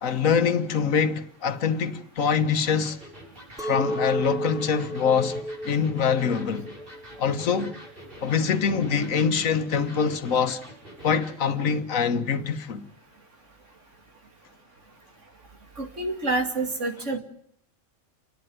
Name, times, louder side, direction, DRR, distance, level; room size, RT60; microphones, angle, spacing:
voice 1, 0.0-3.0 3.6-6.7 7.2-7.8 8.2-10.6 11.0-12.8, left 6 dB, 85° left, 1.5 m, -24 dB
Electric guitar, 2.7-11.4, equal, 45° right, 7.1 m, -46 dB
Chink clink, 3.6-8.8, right 1 dB, 5° right, 0.6 m, -34 dB
voice 2, 15.8-17.2, right 2 dB, 65° right, 2.9 m, -27 dB
29.0 x 11.0 x 9.3 m
omnidirectional pair, 1.4 m